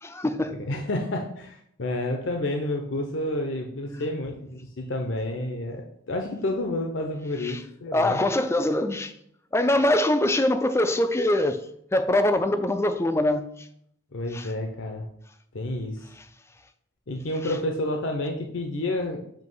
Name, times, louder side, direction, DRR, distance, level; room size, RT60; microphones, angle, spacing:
voice 1, 0.0-0.6 3.9-4.0 7.4-7.6 7.9-9.1 9.5-13.7 14.3-14.5 16.2-16.3 17.4-17.6, left 1 dB, 15° left, 0.4 m, -24 dB
voice 2, 0.7-8.2 14.1-15.1 15.5-16.1 17.1-19.2, left 1 dB, 60° left, 0.7 m, -30 dB
7.5 x 2.9 x 5.4 m
head